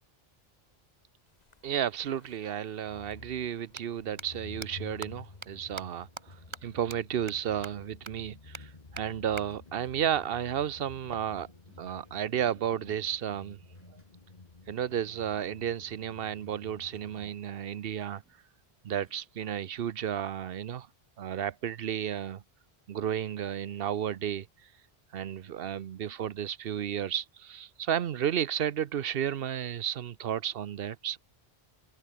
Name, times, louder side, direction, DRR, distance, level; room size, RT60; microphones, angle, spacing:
sound 1, 1.4-17.3, left 3 dB, 40° left, 2.0 m, -51 dB
voice 1, 1.6-6.4 6.6-11.5 11.8-13.6 14.7-18.2 18.8-20.9 21.2-22.4 22.9-24.5 25.1-31.2, right 9 dB, 65° right, 0.9 m, -33 dB
sound 2, 3.7-3.8 4.2-4.3 4.6-4.7 5.0-5.1 5.4-5.5 5.8-5.9 6.2-6.3 6.5-6.6 6.9-7.0 7.3-7.4 7.6-7.7 8.1-8.2 8.5-8.6 9.0-9.1 9.4-9.5 11.1-12.1, right 3 dB, 30° right, 1.1 m, -42 dB
sound 3, 4.6-19.3, equal, 10° right, 4.5 m, -70 dB
omnidirectional pair, 1.1 m